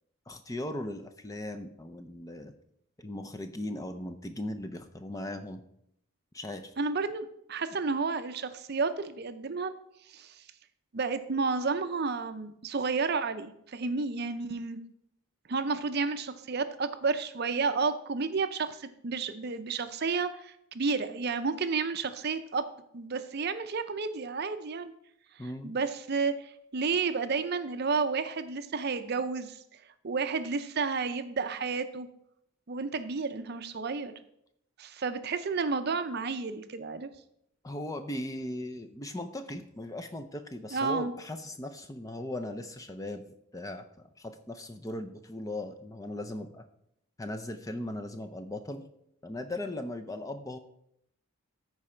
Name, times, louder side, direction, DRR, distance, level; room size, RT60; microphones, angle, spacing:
voice 1, 0.3-2.5 3.0-5.6 6.3-6.7 25.4-25.7 37.6-43.2 43.5-46.6 47.2-48.8 49.2-50.6, left 1 dB, 15° left, 7 dB, 0.5 m, -38 dB
voice 2, 6.8-9.7 10.1-10.3 10.9-14.8 15.5-22.7 22.9-24.9 25.6-29.6 30.0-32.1 32.7-34.1 34.8-37.1 40.7-41.1, right 4 dB, 45° right, 10 dB, 0.5 m, -31 dB
13.5 x 4.8 x 4.4 m, 0.75 s
head